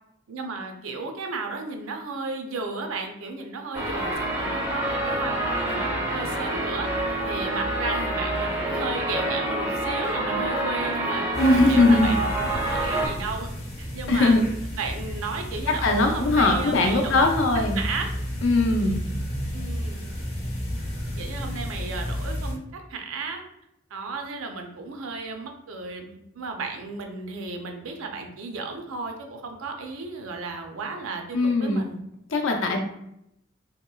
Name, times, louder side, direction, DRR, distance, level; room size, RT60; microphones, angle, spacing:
voice 1, 0.3-6.9 7.2-11.2 11.5-13.5 13.8-14.4 14.8-17.5 17.7-18.1 19.5-20.0 21.2-23.4 23.9-32.0, right 3 dB, 85° right, 4 dB, 0.5 m, -34 dB
sound 1, 3.7-13.1, right 1 dB, 10° right, 0.5 m, -27 dB
sound 2, 11.3-22.5, equal, 30° left, 0.8 m, -32 dB
voice 2, 11.4-12.1 14.1-14.4 15.8-17.8 18.4-19.0 31.3-31.8 32.3-32.8, left 2 dB, 70° left, 3 dB, 0.5 m, -20 dB
2.9 x 2.9 x 2.3 m, 0.81 s
head